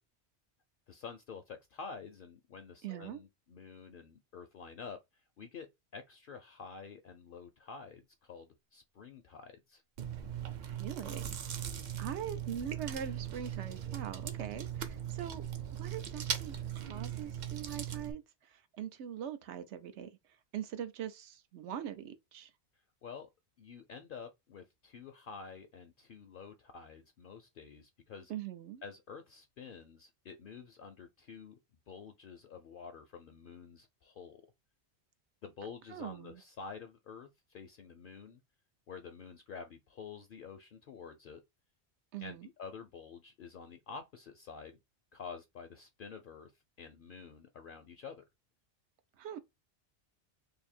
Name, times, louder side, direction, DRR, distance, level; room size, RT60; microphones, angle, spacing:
voice 1, 0.9-5.7 5.9-9.8 12.5-12.6 23.0-23.3 23.6-28.3 28.8-31.6 31.9-34.4 35.4-38.4 38.9-41.4 42.2-44.8 45.1-46.5 46.8-48.2, left 5 dB, 60° left, 0.6 m, -49 dB
voice 2, 2.8-3.2 10.6-11.3 12.0-15.4 15.7-20.2 20.5-22.5 28.3-28.8 35.9-36.4 42.1-42.5 49.2-49.4, right 9 dB, 80° right, 0.9 m, -42 dB
Chewing mastication, 10.0-18.1, right 9 dB, 55° right, 0.5 m, -39 dB
2.8 x 2.6 x 4.1 m
omnidirectional pair, 1.2 m